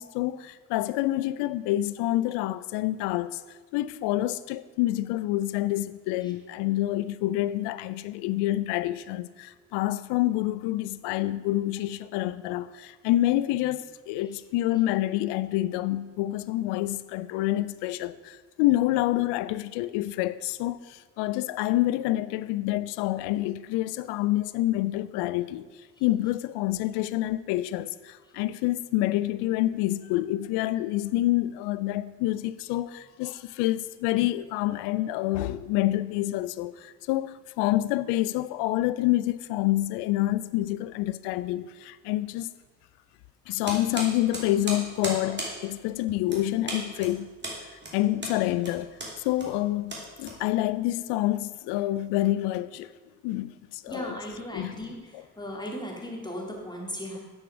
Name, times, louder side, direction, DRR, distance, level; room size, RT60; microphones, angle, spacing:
voice 1, 0.0-3.4 3.7-25.7 26.0-42.5 43.5-47.4 47.9-52.9 53.2-54.2 54.5-54.7 55.1-55.2, left 15 dB, 65° left, 0.5 m, -27 dB
sound 1, 43.6-50.8, right 1 dB, 25° right, 2.8 m, -37 dB
voice 2, 53.9-54.9 55.4-57.2, equal, 10° left, 2.4 m, -36 dB
8.5 x 4.8 x 6.0 m
hypercardioid pair, 50°, 45 cm